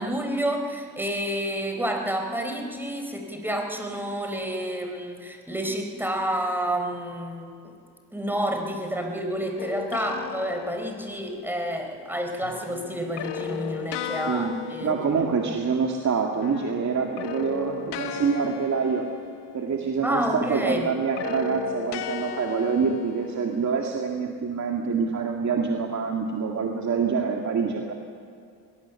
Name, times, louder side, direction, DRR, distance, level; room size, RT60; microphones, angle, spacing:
voice 1, 0.0-7.7 8.1-15.0 20.0-20.9, right 1 dB, 5° right, 4 dB, 4.2 m, -29 dB
sound 1, 9.6-11.5 12.4-16.1 16.4-20.0 20.4-23.8, left 10 dB, 85° left, 1.5 m, -36 dB
voice 2, 14.3-19.1 19.5-27.9, right 5 dB, 45° right, 1 dB, 2.1 m, -26 dB
21.5 x 19.0 x 7.1 m, 2.4 s
cardioid pair, 90°, 40 cm